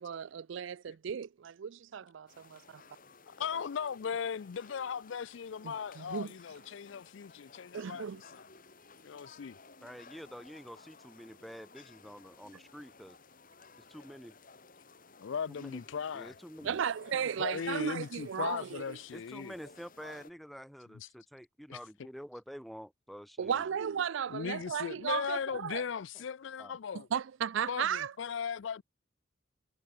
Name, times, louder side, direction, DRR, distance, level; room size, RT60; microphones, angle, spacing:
voice 1, 0.0-2.6 5.6-6.3 7.7-8.2 16.6-19.0 23.4-25.8 27.1-28.1, right 7 dB, 65° right, 0.4 m, -35 dB
sound 1, 2.3-20.3, left 4 dB, 40° left, 3.0 m, -57 dB
voice 2, 3.4-8.4 9.0-9.6 15.2-16.3 16.6-16.7 17.4-19.5 21.0-21.1 21.7-21.8 24.3-27.1 27.7-28.8, left 7 dB, 60° left, 0.4 m, -38 dB
voice 3, 9.8-13.2 13.9-14.4 15.5-15.8 16.1-16.7 19.1-23.8 26.6-26.7, equal, ahead, 2.7 m, -48 dB
head